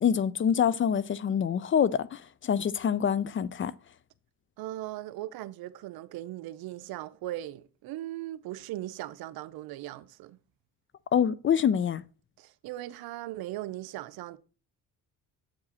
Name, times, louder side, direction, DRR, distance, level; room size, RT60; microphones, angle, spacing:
voice 1, 0.0-3.7 11.1-12.0, left 8 dB, 35° left, 0.4 m, -26 dB
voice 2, 4.6-10.4 12.4-14.4, right 15 dB, 80° right, 0.6 m, -39 dB
7.6 x 4.8 x 4.2 m
cardioid pair, 95°, 36 cm